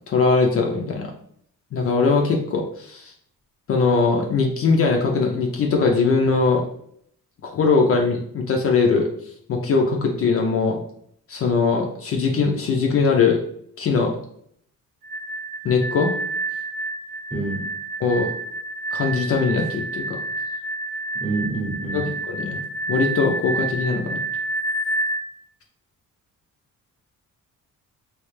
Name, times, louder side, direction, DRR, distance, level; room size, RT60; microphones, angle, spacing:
voice 1, 0.1-1.1 1.7-3.1 3.7-6.6 7.4-9.1 9.5-10.8 11.3-13.4 13.8-14.2 15.6-16.2 18.0-18.3 18.9-20.2 21.9-22.6 22.9-24.2, left 4 dB, 45° left, 1 dB, 0.4 m, -21 dB
sound 1, 15.0-25.2, right 2 dB, 85° right, 0.9 m, -29 dB
voice 2, 17.3-17.7 21.1-22.1, right 2 dB, 15° right, -2 dB, 0.8 m, -27 dB
3.2 x 2.7 x 3.1 m, 0.67 s
cardioid pair, 175°, 33 cm